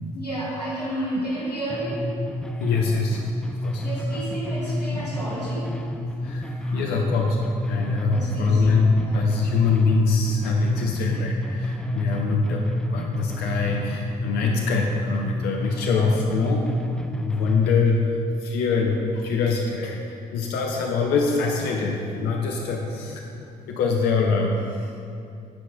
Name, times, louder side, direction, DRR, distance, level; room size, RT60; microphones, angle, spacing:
voice 1, 0.1-2.1 3.8-5.8 6.6-6.9 8.1-8.7 9.0-9.2, right 1 dB, 90° left, -6 dB, 1.1 m, -31 dB
sound 1, 1.7-17.7, left 1 dB, 5° left, 0.3 m, -30 dB
voice 2, 2.6-3.2 3.6-3.8 6.2-7.4 7.7-16.7 17.2-18.2 18.4-24.6, left 4 dB, 55° left, 1 dB, 0.7 m, -24 dB
8.6 x 4.7 x 3.8 m, 2.5 s
figure-of-eight pair, 50°, 20 cm